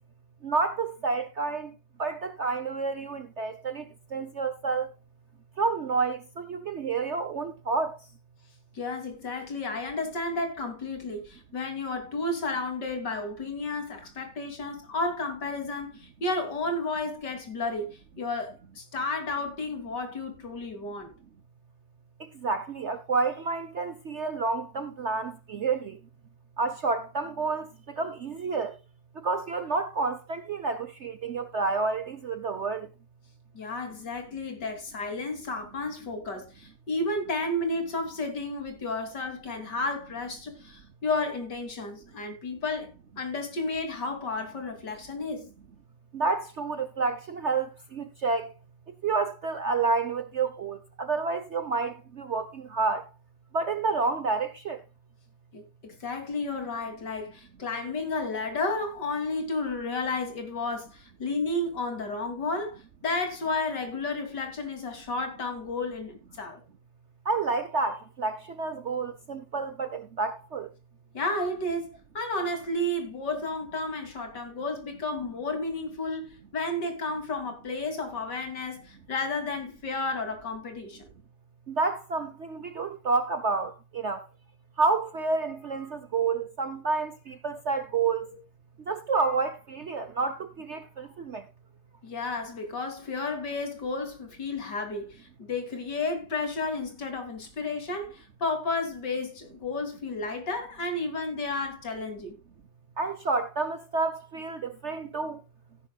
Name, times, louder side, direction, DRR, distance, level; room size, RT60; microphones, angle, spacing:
voice 1, 0.4-1.7 2.0-4.9 5.6-8.1 22.2-26.0 26.6-28.8 29.1-32.9 46.1-48.5 49.0-53.1 53.5-54.8 67.2-70.7 81.7-84.3 84.8-88.3 88.9-91.5 103.0-105.4, right 4 dB, 50° right, 0.9 m, -29 dB
voice 2, 8.7-17.9 18.2-21.1 33.5-45.5 55.5-66.6 71.1-81.1 88.3-88.4 92.0-102.4, left 2 dB, 65° left, 3.4 m, -32 dB
16.5 x 10.0 x 2.3 m
omnidirectional pair, 2.0 m